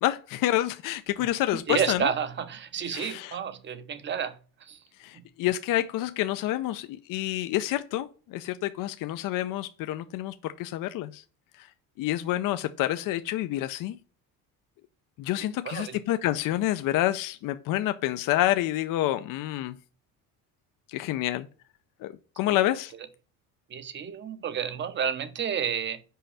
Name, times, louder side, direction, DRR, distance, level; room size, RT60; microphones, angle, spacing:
voice 1, 0.0-2.1 2.9-3.3 5.0-11.2 11.6-11.7 12.0-14.0 15.2-19.8 20.9-21.5 22.0-22.9, left 14 dB, 60° left, 0.6 m, -28 dB
voice 2, 1.5-4.8 5.1-5.2 15.6-16.0 22.4-22.6 23.7-26.0, right 8 dB, 30° right, 0.7 m, -31 dB
5.6 x 5.1 x 5.7 m
cardioid pair, 155°, 37 cm